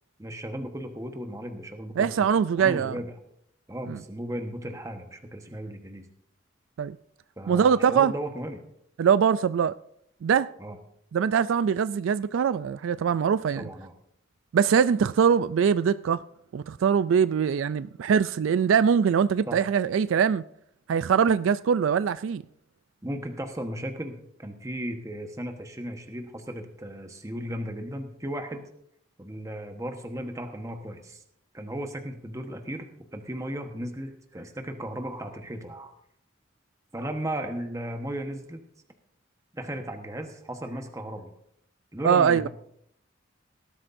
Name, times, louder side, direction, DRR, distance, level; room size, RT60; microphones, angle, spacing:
voice 1, 0.2-3.1 3.7-6.1 7.4-8.6 10.6-10.8 13.6-13.9 19.5-19.6 23.0-28.7 29.2-31.2 31.5-35.9 36.9-38.6 39.5-41.3 41.9-42.5, right 1 dB, 15° right, 1.2 m, -35 dB
voice 2, 2.0-3.0 3.9-4.0 6.8-7.0 7.5-8.1 9.0-9.8 10.2-10.5 11.1-13.6 14.5-16.2 16.5-20.4 20.9-22.4 42.0-42.5, right 7 dB, 80° right, 0.3 m, -22 dB
18.5 x 12.0 x 2.6 m
head